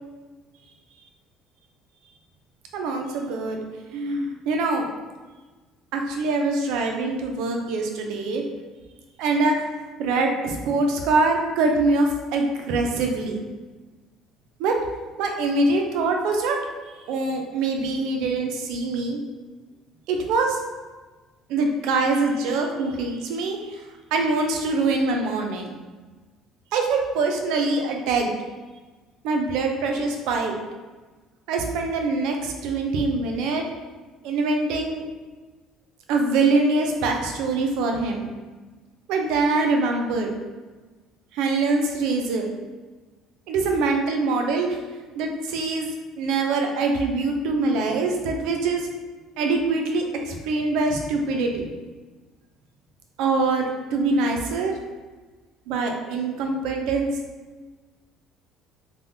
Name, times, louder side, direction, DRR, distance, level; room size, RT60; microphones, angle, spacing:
voice 1, 2.7-3.6 3.9-4.9 5.9-8.4 9.2-9.7 10.0-13.4 14.6-14.7 15.2-16.6 17.1-19.2 20.1-20.6 21.5-23.8 24.1-25.8 26.7-28.3 29.2-30.6 31.5-33.6 34.2-35.0 36.1-38.3 39.1-40.3 41.3-42.5 43.5-44.8 45.2-45.9 46.2-48.9 49.4-51.7 53.2-54.7 55.7-57.1, right 3 dB, 80° right, 3 dB, 0.4 m, -24 dB
3.4 x 2.2 x 2.6 m, 1.3 s
cardioid pair, 120°, 0 cm